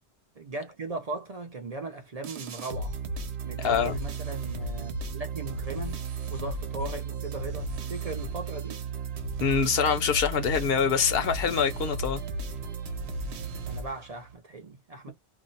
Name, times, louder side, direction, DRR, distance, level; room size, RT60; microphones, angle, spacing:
voice 1, 0.4-2.9 3.4-6.0 6.3-8.8 13.7-15.1, right 3 dB, 45° right, 0.6 m, -38 dB
sound 1, 2.2-14.3, right 3 dB, 90° right, 1.0 m, -34 dB
voice 2, 3.6-3.9 9.4-12.2, left 6 dB, 70° left, 0.9 m, -25 dB
2.6 x 2.1 x 3.8 m
omnidirectional pair, 1.1 m